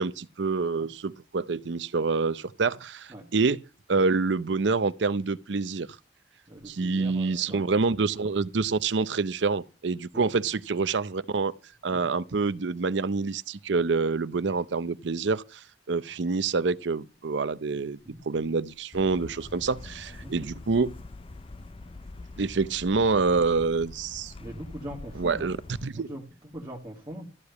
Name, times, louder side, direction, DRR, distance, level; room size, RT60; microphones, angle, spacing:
voice 1, 0.0-3.6 3.9-5.9 6.7-11.5 11.8-18.0 18.3-20.9 22.4-24.3 25.2-25.6 25.8-26.1, right 4 dB, 70° right, 0.6 m, -27 dB
voice 2, 6.5-8.0 10.1-10.5 11.9-12.1 20.2-20.5 24.3-25.6 25.9-27.2, equal, 20° right, 2.1 m, -42 dB
sound 1, 18.9-25.9, left 2 dB, 30° left, 0.5 m, -44 dB
13.5 x 5.0 x 8.1 m
head